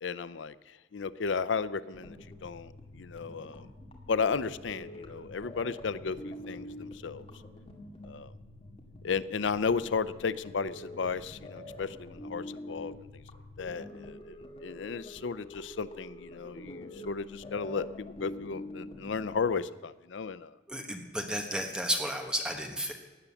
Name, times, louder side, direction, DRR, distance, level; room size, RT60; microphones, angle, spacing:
voice 1, 0.0-0.5 0.9-3.7 4.1-7.2 8.0-8.3 9.0-12.9 13.6-14.3 14.6-20.5, left 5 dB, 80° left, 17 dB, 0.5 m, -34 dB
sound 1, 1.9-19.5, left 1 dB, 30° left, 2.1 m, -46 dB
voice 2, 20.7-22.9, equal, 5° right, 3 dB, 1.2 m, -32 dB
17.0 x 10.5 x 7.0 m, 1.3 s
head